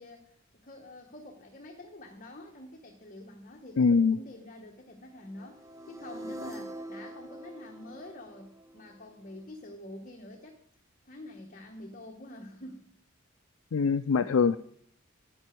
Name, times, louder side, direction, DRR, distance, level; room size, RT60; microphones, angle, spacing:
voice 1, 0.0-10.6 11.0-12.8 13.9-14.0, left 1 dB, 40° left, 3 dB, 1.1 m, -47 dB
voice 2, 3.8-4.2 13.7-14.6, left 5 dB, 75° left, 10 dB, 0.4 m, -23 dB
sound 1, 5.3-9.4, right 1 dB, 15° right, 0.7 m, -44 dB
10.0 x 9.8 x 4.5 m, 0.64 s
head